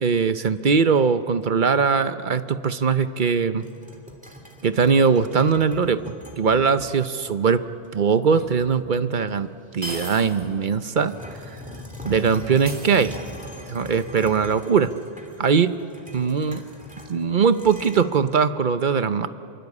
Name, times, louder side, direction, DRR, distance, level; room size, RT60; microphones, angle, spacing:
voice 1, 0.0-3.6 4.6-6.0 6.4-7.6 7.9-11.2 12.0-13.2 13.7-14.9 15.4-15.7 16.1-16.6 17.1-19.3, right 6 dB, 55° right, 11 dB, 1.0 m, -21 dB
sound 1, 3.6-7.2 7.8-7.9 8.4-9.5 9.9-18.0, left 1 dB, 5° right, 3.3 m, -42 dB
sound 2, 8.4-8.5 9.8-10.5 10.9-11.0 12.7-13.5, right 1 dB, 75° right, 3.3 m, -36 dB
27.5 x 23.0 x 8.5 m, 2.7 s
omnidirectional pair, 1.0 m